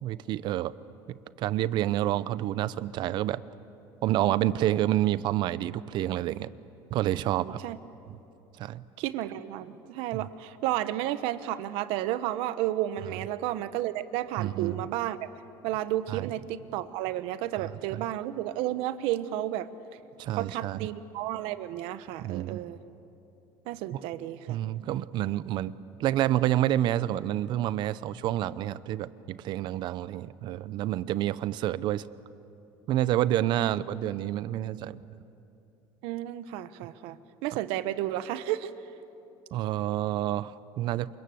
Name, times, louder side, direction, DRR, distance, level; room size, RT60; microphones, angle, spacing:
voice 1, 0.0-0.7 1.1-3.4 4.0-6.5 6.9-7.6 8.6-8.8 14.4-14.8 16.1-16.3 17.6-18.0 20.2-20.9 22.2-22.6 24.5-25.7 26.0-32.1 32.9-35.0 39.5-41.2, right 13 dB, 55° right, 17 dB, 0.7 m, -28 dB
voice 2, 7.4-7.8 9.0-15.3 15.6-19.7 20.3-22.8 23.6-24.6 33.6-33.7 36.0-38.7, right 13 dB, 75° right, 13 dB, 1.1 m, -32 dB
28.5 x 25.0 x 7.8 m, 2.8 s
cardioid pair, 145°, 9 cm